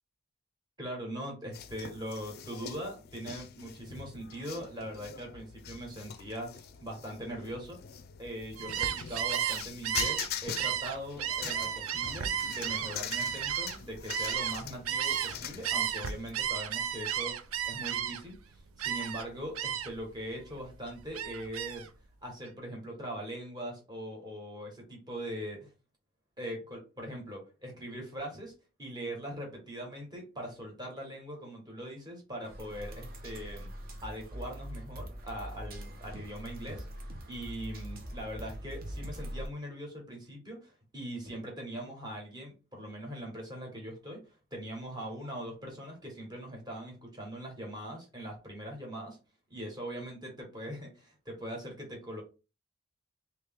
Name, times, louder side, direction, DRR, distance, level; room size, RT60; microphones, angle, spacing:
voice 1, 0.8-7.8 8.2-21.9 22.2-25.7 26.4-28.5 28.8-33.7 34.0-44.2 44.5-49.2 49.5-52.2, equal, 20° right, 0 dB, 1.4 m, -41 dB
sound 1, 1.5-16.3, left 8 dB, 45° left, 0.4 m, -43 dB
Gull seagull, 8.6-15.4 15.6-18.4 18.8-19.3 19.6-20.0 20.4-21.9, right 9 dB, 80° right, 0.5 m, -33 dB
sound 2, 32.4-39.5, equal, 45° right, 0.8 m, -42 dB
3.2 x 3.0 x 3.5 m, 0.32 s
head